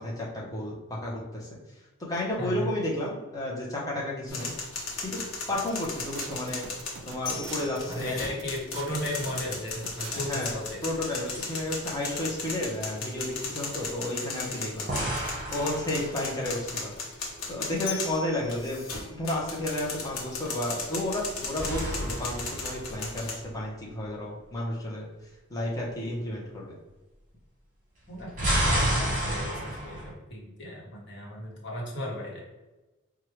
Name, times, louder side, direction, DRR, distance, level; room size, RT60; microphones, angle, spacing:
voice 1, 0.0-1.5 2.0-4.5 5.0-5.2 5.5-6.6 7.0-8.2 10.1-10.5 10.8-17.1 17.5-25.1 25.5-26.8, left 1 dB, 15° left, -4 dB, 0.8 m, -32 dB
voice 2, 2.4-2.7 7.9-10.9 28.1-32.5, equal, 55° left, -3 dB, 1.2 m, -35 dB
sound 1, 4.3-23.4, left 3 dB, 85° left, 1.1 m, -36 dB
sound 2, 5.5-10.5, right 5 dB, 65° right, 0.4 m, -43 dB
sound 3, 10.5-11.1 11.3-11.5 14.9-16.6 21.1-23.6 28.1-30.1, right 1 dB, 40° right, 1.1 m, -31 dB
4.5 x 2.4 x 3.1 m, 1.1 s
head